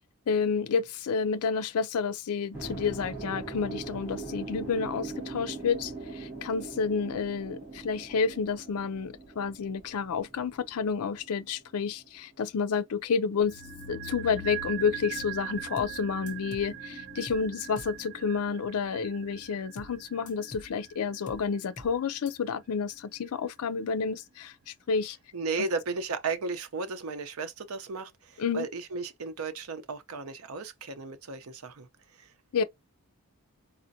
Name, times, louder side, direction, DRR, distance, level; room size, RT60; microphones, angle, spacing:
voice 1, 0.3-13.6 13.9-25.2 28.4-28.7 32.5-32.6, left 5 dB, 75° left, 0.4 m, -30 dB
sound 1, 2.5-12.7, right 3 dB, 10° right, 1.5 m, -41 dB
sound 2, 13.4-23.7 23.9-24.0, right 7 dB, 55° right, 2.6 m, -42 dB
sound 3, 15.8-16.0 16.3-16.7 17.3-17.5 17.8-18.0 19.8-20.0 20.3-20.7 21.3-21.5 21.8-22.0 22.3-22.4, left 1 dB, 35° left, 0.6 m, -45 dB
voice 2, 25.3-31.9 32.2-32.3, right 4 dB, 75° right, 0.7 m, -35 dB
4.2 x 2.5 x 2.7 m
head